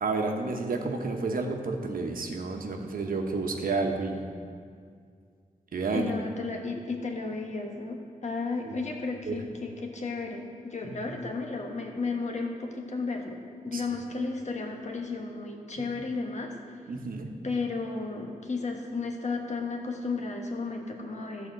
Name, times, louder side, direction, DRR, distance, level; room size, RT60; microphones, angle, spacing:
voice 1, 0.0-4.3 5.7-6.1 8.6-8.8 9.3-9.4 10.9-11.1 13.7-13.8 16.9-17.3, right 3 dB, 80° right, 3 dB, 1.0 m, -30 dB
voice 2, 5.9-13.4 13.6-16.5 17.4-21.5, left 3 dB, 55° left, 2 dB, 1.2 m, -33 dB
11.5 x 4.3 x 7.4 m, 2.1 s
wide cardioid pair, 75°, 15 cm